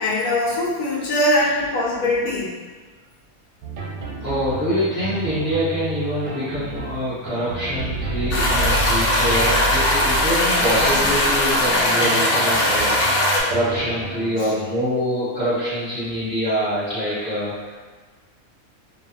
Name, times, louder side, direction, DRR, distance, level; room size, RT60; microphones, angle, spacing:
voice 1, 0.0-2.5, left 1 dB, 85° left, -4 dB, 1.2 m, -21 dB
sound 1, 3.6-14.7, right 1 dB, 85° right, 1.1 m, -30 dB
voice 2, 4.2-17.8, equal, 35° left, -13 dB, 0.9 m, -25 dB
sound 2, 8.3-13.4, left 1 dB, 65° left, 0.8 m, -19 dB
2.8 x 2.3 x 2.6 m, 1.4 s
omnidirectional pair, 1.5 m